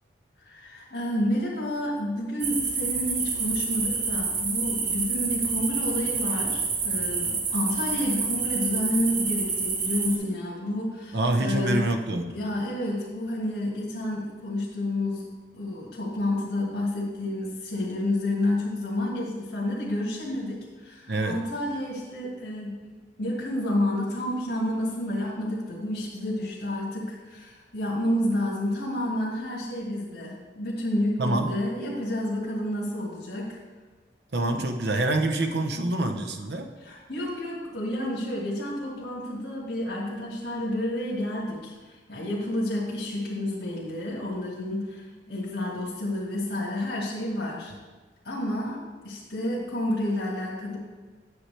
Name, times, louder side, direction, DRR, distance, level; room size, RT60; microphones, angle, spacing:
voice 1, 0.4-11.9 12.3-15.2 15.5-22.8 23.2-33.6 34.5-34.6 36.8-47.7 48.2-50.8, left 1 dB, 75° left, -5 dB, 1.8 m, -30 dB
sound 1, 2.4-10.2, right 4 dB, 50° right, 1.1 m, -28 dB
voice 2, 11.1-12.3 21.1-21.4 31.2-31.5 34.3-36.7, right 2 dB, 65° right, 5 dB, 0.8 m, -26 dB
9.4 x 7.5 x 3.3 m, 1.3 s
head